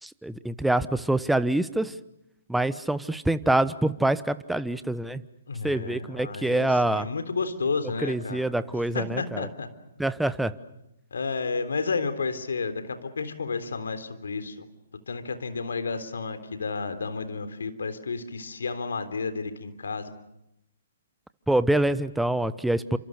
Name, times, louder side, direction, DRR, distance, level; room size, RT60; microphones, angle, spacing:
voice 1, 0.0-2.0 2.5-5.2 5.6-7.1 8.0-9.5 10.0-10.5 21.5-23.0, right 1 dB, 5° right, 14 dB, 1.1 m, -25 dB
voice 2, 5.5-8.5 8.9-9.7 11.1-14.7 15.1-20.1, left 4 dB, 75° left, 10 dB, 3.7 m, -31 dB
30.0 x 27.0 x 6.6 m, 0.83 s
figure-of-eight pair, 130°, 0 cm